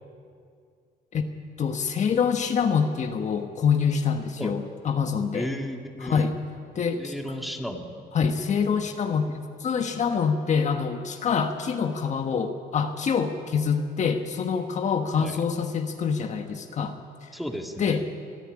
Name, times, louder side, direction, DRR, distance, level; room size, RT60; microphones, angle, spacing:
voice 1, 1.6-5.5 6.0-6.4 6.7-7.1 8.1-9.3 9.6-17.3 17.8-18.0, left 6 dB, 45° left, 5 dB, 1.4 m, -26 dB
voice 2, 5.3-6.3 7.0-8.0 15.2-15.4 17.3-18.0, equal, ahead, 3 dB, 1.9 m, -34 dB
25.5 x 10.0 x 9.9 m, 2.2 s
cardioid pair, 110°, 17 cm